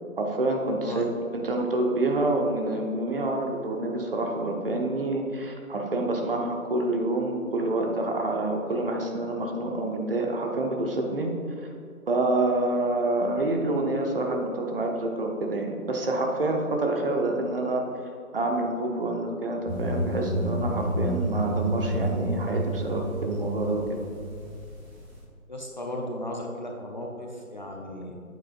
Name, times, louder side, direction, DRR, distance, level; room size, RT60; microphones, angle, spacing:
voice 1, 0.2-1.0 1.3-11.3 12.1-17.8 18.3-24.0, right 2 dB, 40° right, 2 dB, 0.9 m, -27 dB
sound 1, 19.7-25.2, right 1 dB, 10° right, 1.0 m, -30 dB
voice 2, 25.5-28.2, left 1 dB, 35° left, 0 dB, 0.6 m, -35 dB
8.4 x 8.1 x 2.5 m, 2.3 s
figure-of-eight pair, 150°, 43 cm